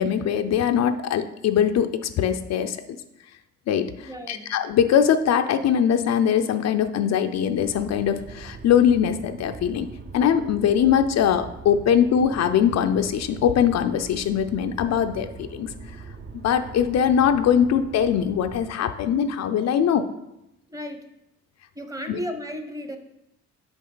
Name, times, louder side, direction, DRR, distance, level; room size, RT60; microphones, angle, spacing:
voice 1, 0.0-2.8 3.7-9.9 10.1-15.7 16.3-20.0 22.1-22.2, left 8 dB, 60° left, 8 dB, 0.5 m, -22 dB
voice 2, 4.1-4.5 20.7-21.1 21.7-23.0, equal, 10° right, 5 dB, 0.9 m, -34 dB
sound 1, 7.6-18.7, right 4 dB, 35° right, 0.6 m, -42 dB
6.1 x 5.3 x 3.9 m, 0.87 s
cardioid pair, 90°, 30 cm